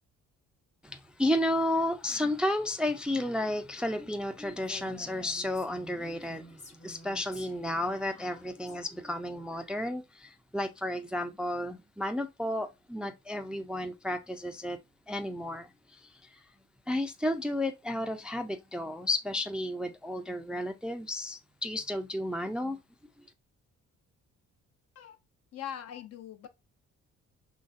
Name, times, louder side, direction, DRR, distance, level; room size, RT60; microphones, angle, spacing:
voice 1, 0.8-6.5 6.8-14.8 15.1-16.1 16.9-22.8, left 1 dB, 5° right, 0.3 m, -32 dB
Female speech woman speaking, 4.6-8.8, left 1 dB, 25° left, 0.8 m, -51 dB
voice 2, 25.5-26.5, left 10 dB, 55° left, 0.6 m, -42 dB
3.9 x 3.1 x 2.5 m
cardioid pair, 90°, 30 cm